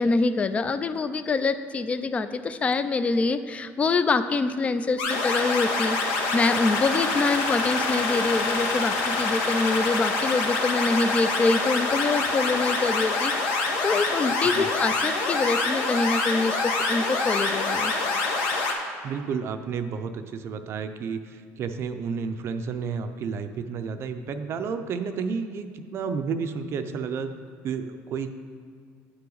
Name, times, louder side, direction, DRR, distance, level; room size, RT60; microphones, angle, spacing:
voice 1, 0.0-17.9, left 3 dB, 20° left, 11 dB, 0.3 m, -25 dB
sound 1, 5.0-18.7, left 3 dB, 80° left, 1.1 m, -26 dB
voice 2, 19.0-27.3 27.6-28.3, right 5 dB, 45° right, 8 dB, 0.5 m, -31 dB
9.6 x 5.7 x 3.9 m, 2.1 s
cardioid pair, 125°, 6 cm